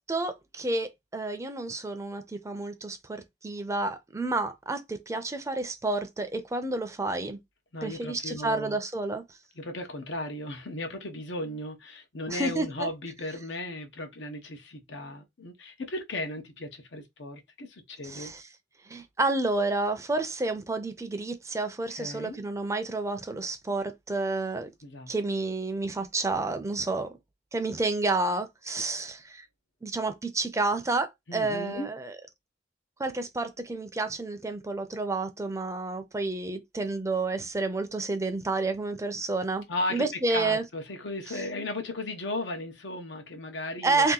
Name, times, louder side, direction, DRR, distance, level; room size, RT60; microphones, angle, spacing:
voice 1, 0.1-7.4 7.8-9.2 12.3-12.9 18.0-18.4 18.9-24.7 25.1-27.1 27.5-29.4 29.8-32.1 33.0-39.6 39.9-40.6 43.8-44.1, right 3 dB, 15° right, 0.5 m, -30 dB
voice 2, 7.7-8.8 9.6-18.3 22.0-22.4 24.8-25.1 31.3-31.9 39.7-44.1, left 1 dB, 85° left, 0.9 m, -36 dB
2.8 x 2.6 x 3.8 m
head